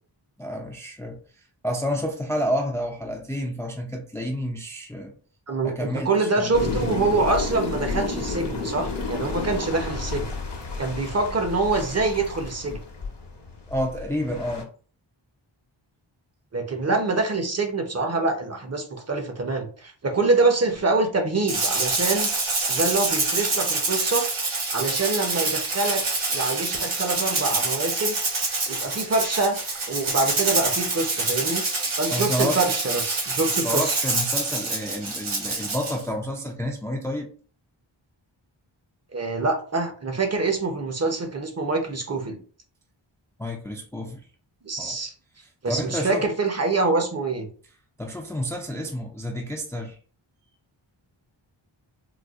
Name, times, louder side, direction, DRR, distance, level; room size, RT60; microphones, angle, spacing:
voice 1, 0.4-1.2 1.6-5.1 5.6-6.5 13.7-14.7 32.1-32.7 33.6-37.3 43.4-44.2 44.8-45.0 45.7-46.2 48.0-50.0, equal, 5° left, 0.4 m, -29 dB
voice 2, 5.5-10.3 10.8-12.8 16.5-22.3 22.7-24.3 24.7-28.2 28.7-29.6 29.9-31.6 32.0-34.0 39.1-42.4 44.6-45.1 45.6-47.5, right 3 dB, 35° right, 0.7 m, -25 dB
sound 1, 6.5-14.6, left 3 dB, 60° left, 0.9 m, -31 dB
Rattle (instrument), 21.5-36.0, right 3 dB, 85° right, 1.2 m, -26 dB
4.0 x 2.4 x 2.3 m
wide cardioid pair, 85°, 48 cm